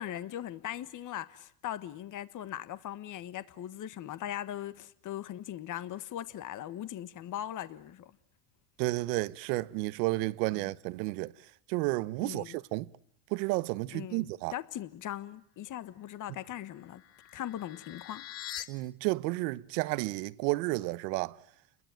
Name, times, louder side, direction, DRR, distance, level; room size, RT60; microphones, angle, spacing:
voice 1, 0.0-8.1 10.5-10.7 12.2-12.6 13.9-17.0 17.3-18.3, left 11 dB, 40° left, 1.5 m, -40 dB
voice 2, 8.8-11.3 11.7-12.9 13.3-14.5 18.7-21.3, right 21 dB, 75° right, 1.1 m, -31 dB
sound 1, 16.4-18.7, left 12 dB, 55° left, 1.9 m, -44 dB
30.0 x 22.0 x 9.1 m
supercardioid pair, 125°, 49 cm